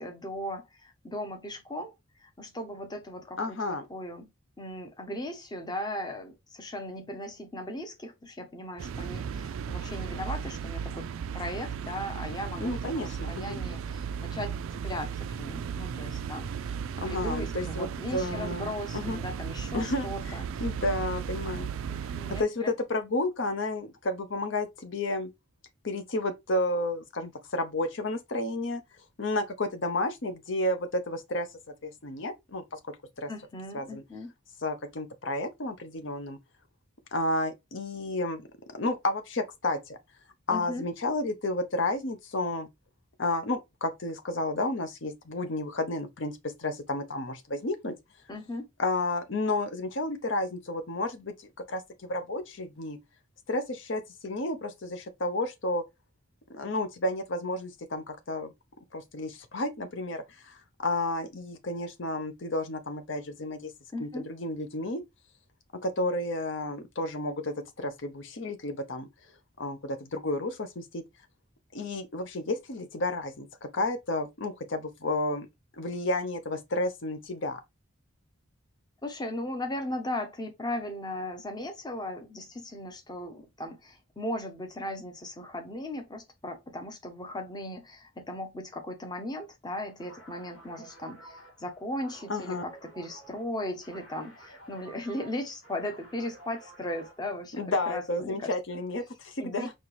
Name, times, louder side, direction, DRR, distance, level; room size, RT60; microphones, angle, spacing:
voice 1, 0.0-1.9 2.2-4.3 4.6-11.1 11.3-16.8 17.1-20.6 21.9-22.7 33.3-34.3 40.5-40.9 48.3-48.7 63.9-64.3 79.0-98.5 99.4-99.7, left 1 dB, 20° left, 0.8 m, -37 dB
voice 2, 3.4-3.8 12.6-13.6 17.0-19.2 19.7-21.7 21.9-25.3 25.8-28.8 29.2-31.5 31.8-33.3 33.7-34.0 34.6-36.4 37.1-38.5 38.7-40.0 40.5-42.7 43.2-47.9 48.8-51.3 51.7-53.0 53.5-55.8 56.5-58.5 58.9-63.7 64.0-65.0 65.8-69.1 69.6-71.0 71.7-75.5 75.8-77.6 92.3-92.6 97.5-99.7, left 2 dB, 60° left, 0.8 m, -31 dB
sound 1, 8.8-22.4, right 7 dB, 75° right, 0.3 m, -35 dB
sound 2, 89.9-97.4, right 2 dB, 85° left, 1.7 m, -52 dB
4.3 x 3.0 x 3.1 m
head